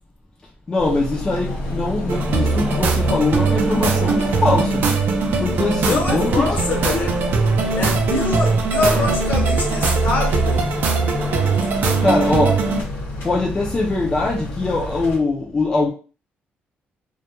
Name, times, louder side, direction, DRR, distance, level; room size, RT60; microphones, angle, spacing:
voice 1, 0.7-4.9 5.4-6.5 7.6-7.8 12.0-12.8 13.2-15.9, left 2 dB, 20° left, 0.4 m, -22 dB
sound 1, 0.8-15.2, equal, 85° left, 0.8 m, -29 dB
sound 2, 2.1-12.8, right 4 dB, 55° right, 0.4 m, -21 dB
voice 2, 5.8-7.2 7.7-10.7 11.5-11.7, left 2 dB, 50° left, 0.7 m, -25 dB
2.2 x 2.1 x 2.8 m
cardioid pair, 165°, 4 cm